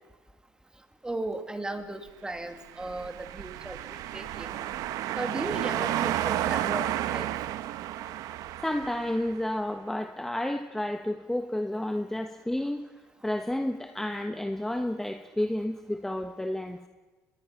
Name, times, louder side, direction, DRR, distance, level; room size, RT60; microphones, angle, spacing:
voice 1, 1.0-4.6 5.1-7.3, right 2 dB, 10° right, 7 dB, 2.4 m, -36 dB
sound 1, 2.7-9.4, right 13 dB, 70° right, 1.0 m, -32 dB
voice 2, 8.6-12.8 13.2-16.9, left 1 dB, 5° left, 6 dB, 1.3 m, -31 dB
24.0 x 21.0 x 5.9 m, 1.3 s
cardioid pair, 100°, 6 cm